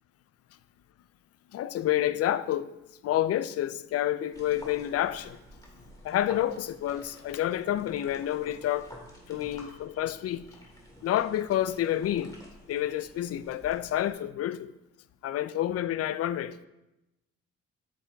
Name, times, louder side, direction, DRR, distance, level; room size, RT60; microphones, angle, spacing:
voice 1, 1.5-2.7 3.0-5.4 6.0-8.9 9.3-10.5 11.0-12.3 12.7-14.7 15.2-16.6, left 12 dB, 55° left, 0.4 m, -29 dB
sound 1, 4.3-14.1, equal, 10° left, 1.8 m, -51 dB
8.4 x 6.9 x 2.3 m
cardioid pair, 90°, 30 cm